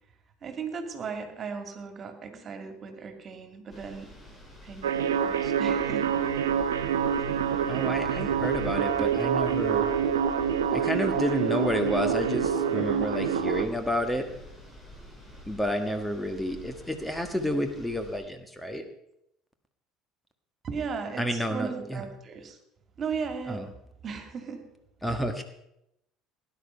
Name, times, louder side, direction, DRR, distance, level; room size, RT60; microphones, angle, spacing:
voice 1, 0.4-4.1 4.6-6.1 9.0-9.1 20.6-22.6 23.0-23.6 24.0-24.6 25.0-25.1, right 5 dB, 40° right, 6 dB, 2.5 m, -36 dB
sound 1, 3.7-18.2, left 1 dB, 25° left, 7.3 m, -47 dB
sound 2, 4.8-13.7, right 7 dB, 80° right, 0.9 m, -26 dB
voice 2, 7.7-9.9 10.7-14.3 15.5-18.8 21.2-22.0 23.5-23.6 25.0-25.4, equal, 5° left, 7 dB, 1.5 m, -30 dB
18.0 x 10.5 x 5.5 m, 0.81 s
figure-of-eight pair, 60°, 0 cm